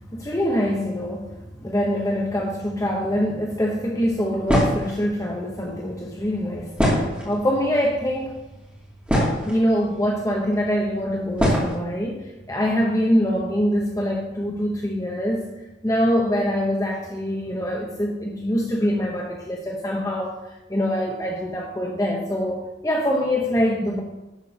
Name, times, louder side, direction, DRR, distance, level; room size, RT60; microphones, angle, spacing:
voice 1, 0.0-8.5 9.4-15.5 15.8-24.0, equal, 15° left, -1 dB, 0.9 m, -24 dB
sound 1, 4.5-4.9 6.8-7.5 8.3-8.4 8.8-9.6 10.5-10.6 11.4-11.7, equal, 5° right, 2.5 m, -21 dB
11.0 x 4.5 x 7.0 m, 1.0 s
head